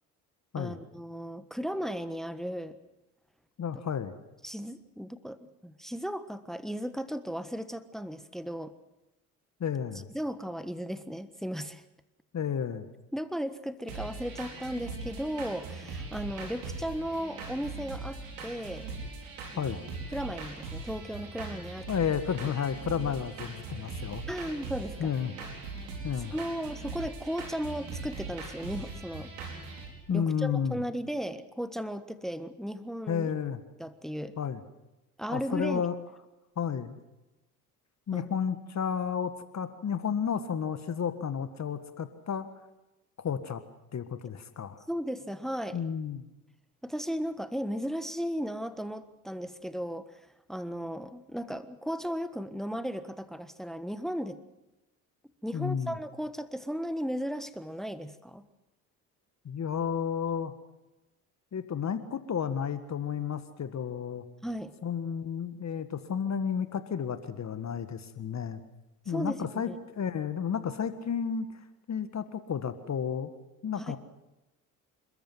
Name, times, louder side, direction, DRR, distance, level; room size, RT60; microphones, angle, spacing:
voice 1, 0.6-2.8 4.4-8.7 10.1-11.8 13.1-18.9 19.5-19.6 20.1-21.9 24.3-25.1 26.3-29.3 30.1-33.3 33.8-34.3 35.2-35.8 38.1-38.3 44.9-45.8 46.8-54.4 55.4-58.4 64.4-64.7 69.1-69.4 69.7-69.8 73.8-73.9, equal, ahead, 13 dB, 1.4 m, -35 dB
voice 2, 3.6-4.1 9.6-10.1 12.3-12.9 19.6-19.8 21.9-24.2 25.0-25.3 26.0-26.4 30.1-30.8 33.1-33.6 34.4-34.6 35.3-36.0 36.6-37.0 38.1-42.5 43.2-43.6 43.9-44.8 45.7-46.3 55.5-56.0 59.5-60.5 61.5-64.3 64.8-68.6 69.1-73.3 73.6-74.0, left 7 dB, 35° left, 11 dB, 1.7 m, -32 dB
sound 1, 13.9-29.9, right 3 dB, 75° right, 4.9 m, -40 dB
29.0 x 14.0 x 7.7 m, 0.99 s
hypercardioid pair, 60°, 44 cm